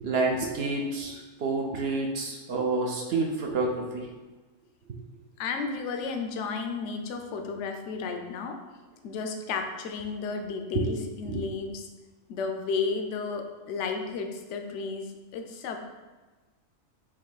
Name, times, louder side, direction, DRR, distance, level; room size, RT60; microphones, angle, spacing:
voice 1, 0.0-4.1 10.7-10.8 11.3-11.4, right 3 dB, 60° right, 1 dB, 0.7 m, -29 dB
voice 2, 5.4-8.6 9.0-11.9 12.3-15.8, left 4 dB, 70° left, 4 dB, 0.8 m, -33 dB
4.6 x 2.6 x 3.9 m, 1.2 s
omnidirectional pair, 1.4 m